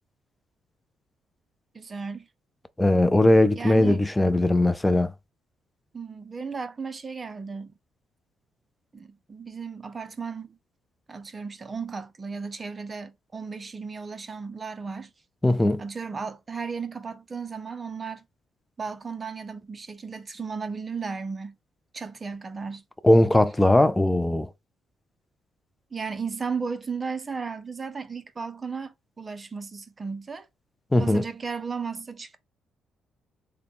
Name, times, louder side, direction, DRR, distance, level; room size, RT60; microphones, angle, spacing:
voice 1, 1.7-2.3 3.5-4.1 5.9-7.7 8.9-10.6 11.1-15.1 15.8-18.2 18.8-21.6 21.9-22.8 25.9-30.5 30.9-32.4, right 5 dB, 30° right, 0.6 m, -35 dB
voice 2, 2.8-5.1 15.4-15.8 23.0-24.5 30.9-31.2, left 1 dB, 10° left, 0.4 m, -19 dB
3.7 x 2.2 x 3.5 m
cardioid pair, 90°, 0 cm